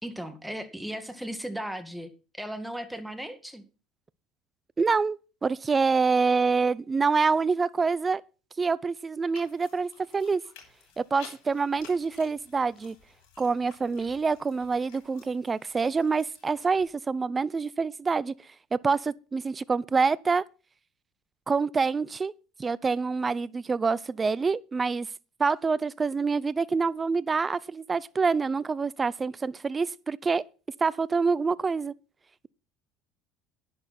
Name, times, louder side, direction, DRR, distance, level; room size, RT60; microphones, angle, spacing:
voice 1, 0.0-3.6, equal, 5° right, 2.1 m, -36 dB
voice 2, 4.8-8.2 8.6-10.4 11.0-13.0 13.4-18.3 18.7-20.4 21.5-22.3 22.6-25.1 25.4-30.4 30.8-31.9, right 4 dB, 25° right, 0.6 m, -26 dB
sound 1, 9.3-16.8, left 7 dB, 75° left, 6.8 m, -53 dB
11.0 x 10.5 x 4.3 m
supercardioid pair, 90°, 0 cm